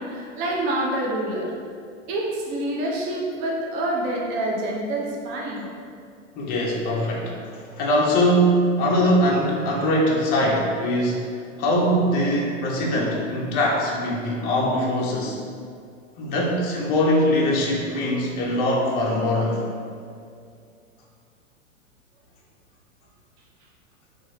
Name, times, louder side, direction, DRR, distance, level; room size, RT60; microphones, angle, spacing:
voice 1, 0.0-1.5 2.1-5.7, right 1 dB, 30° right, -3 dB, 0.5 m, -27 dB
voice 2, 6.4-11.3 11.6-15.4 16.2-19.6, equal, 25° left, -3 dB, 0.5 m, -22 dB
2.9 x 2.4 x 2.8 m, 2.3 s
hypercardioid pair, 115°, 39 cm